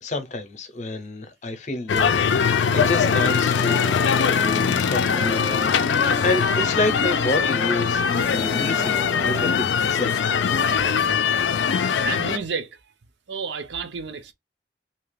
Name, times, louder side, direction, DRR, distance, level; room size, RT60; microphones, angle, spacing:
voice 1, 0.0-4.0 4.4-10.2, left 2 dB, 40° left, 0.6 m, -29 dB
sound 1, 1.9-12.4, left 6 dB, 90° left, 0.4 m, -21 dB
sound 2, 2.4-11.6, right 1 dB, 15° right, 0.5 m, -36 dB
voice 2, 12.0-12.7 13.3-14.3, right 5 dB, 80° right, 0.6 m, -30 dB
2.8 x 2.3 x 3.2 m
head